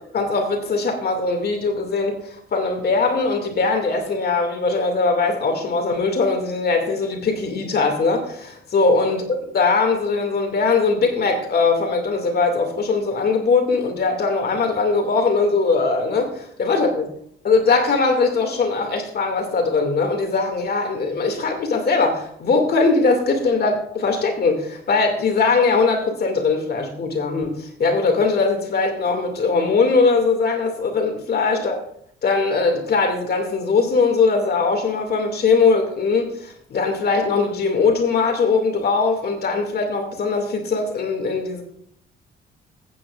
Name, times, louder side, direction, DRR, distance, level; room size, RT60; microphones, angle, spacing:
voice 1, 0.1-17.1 17.4-31.8 32.2-41.6, left 4 dB, 55° left, 3 dB, 2.4 m, -20 dB
15.0 x 8.9 x 2.5 m, 0.66 s
cardioid pair, 90°, 20 cm